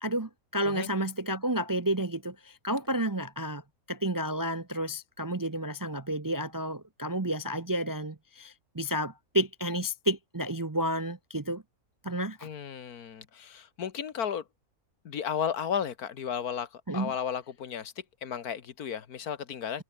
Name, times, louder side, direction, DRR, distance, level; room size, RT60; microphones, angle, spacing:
voice 1, 0.0-3.6 3.9-11.6 12.0-12.5 16.9-17.1, right 1 dB, 25° right, 0.5 m, -31 dB
voice 2, 12.4-14.4 15.0-19.8, left 8 dB, 80° left, 1.8 m, -34 dB
omnidirectional pair, 1.6 m